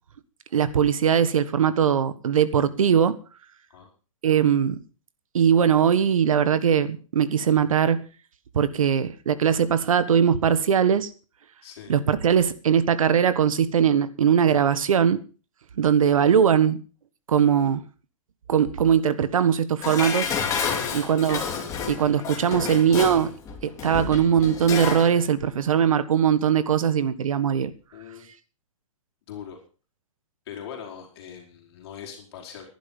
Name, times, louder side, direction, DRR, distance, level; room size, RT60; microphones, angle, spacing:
voice 1, 0.5-3.2 4.2-4.8 5.3-8.0 8.5-11.1 11.9-15.2 15.8-16.8 17.3-17.8 18.5-20.3 20.9-21.4 21.9-23.3 23.6-27.7, right 8 dB, 80° right, 1.6 m, -20 dB
voice 2, 11.6-12.0 20.6-21.0 27.9-28.3 29.3-29.6 30.5-32.6, left 8 dB, 50° left, 4.6 m, -41 dB
Dishes pots and pans, 19.8-25.1 25.4-25.5, left 6 dB, 20° left, 3.2 m, -30 dB
15.5 x 11.5 x 5.4 m
hypercardioid pair, 155°, 17 cm